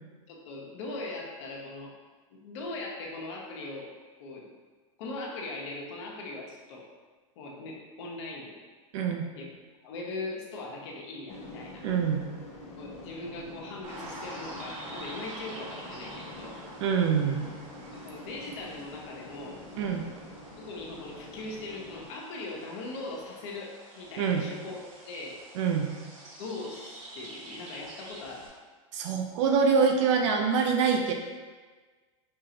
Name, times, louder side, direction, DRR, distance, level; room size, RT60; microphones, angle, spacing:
voice 1, 0.3-1.9 2.3-3.9 4.2-4.5 5.0-6.9 7.4-8.6 9.3-9.5 9.8-11.8 12.8-16.6 17.9-19.6 20.6-25.4 26.4-28.5, left 2 dB, 60° left, -2 dB, 0.9 m, -40 dB
voice 2, 8.9-9.3 11.8-12.2 16.8-17.5 19.8-20.0 24.2-24.4 25.6-25.9 28.9-31.1, right 6 dB, 65° right, 3 dB, 0.4 m, -25 dB
sound 1, 11.3-22.1, left 2 dB, 35° left, 1.1 m, -46 dB
sound 2, 13.8-28.5, right 1 dB, 85° right, 1.2 m, -47 dB
5.4 x 2.4 x 2.8 m, 1.4 s
supercardioid pair, 135°, 17 cm